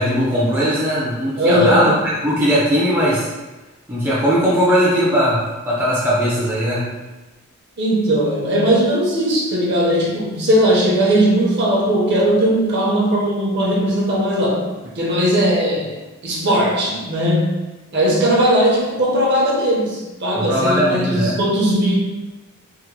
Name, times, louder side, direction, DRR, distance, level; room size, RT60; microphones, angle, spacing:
voice 1, 0.0-1.9 2.2-3.3 3.9-6.9 20.4-21.3, equal, 10° right, -8 dB, 0.5 m, -18 dB
voice 2, 1.4-1.9 7.8-15.9 16.2-17.5 17.9-21.9, equal, 50° right, -4 dB, 0.7 m, -18 dB
3.4 x 2.1 x 3.1 m, 1.1 s
head